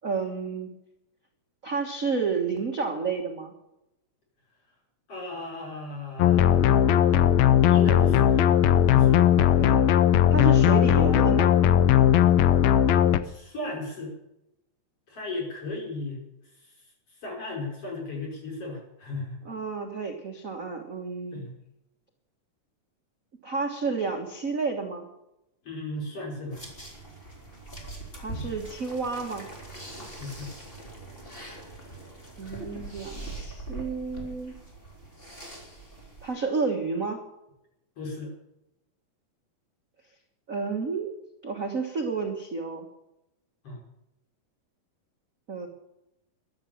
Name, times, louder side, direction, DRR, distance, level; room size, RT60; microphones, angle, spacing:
voice 1, 0.0-0.7 1.6-3.5 9.3-9.8 10.3-11.6 19.4-21.4 23.4-25.0 28.2-29.5 32.4-34.6 36.2-37.2 40.5-41.1 41.4-42.9 45.5-45.7, right 4 dB, 40° right, 2 dB, 1.2 m, -30 dB
voice 2, 5.1-6.8 7.7-8.5 8.9-9.3 13.2-14.1 15.1-16.2 16.6-16.7 17.2-19.4 21.3-21.5 25.6-26.6 30.2-30.5 38.0-38.3 43.6-43.8, left 2 dB, 40° left, -1 dB, 6.2 m, -36 dB
sound 1, 6.2-13.2, left 10 dB, 75° left, 1.6 m, -19 dB
sound 2, 26.5-36.3, right 2 dB, 15° left, 3.3 m, -42 dB
14.5 x 12.0 x 7.2 m, 0.88 s
omnidirectional pair, 3.9 m